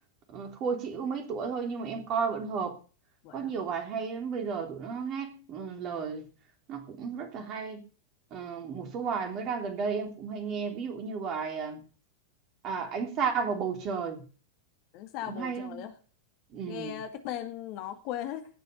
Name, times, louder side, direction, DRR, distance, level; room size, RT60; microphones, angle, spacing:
voice 1, 0.3-2.8 3.3-6.2 6.7-7.8 8.3-11.8 12.6-14.2 15.3-15.8 16.5-16.9, right 5 dB, 35° right, 6 dB, 3.3 m, -33 dB
voice 2, 14.9-15.9 16.7-18.5, left 11 dB, 45° left, 8 dB, 1.9 m, -38 dB
17.0 x 6.9 x 6.8 m, 0.37 s
figure-of-eight pair, 90°, 0 cm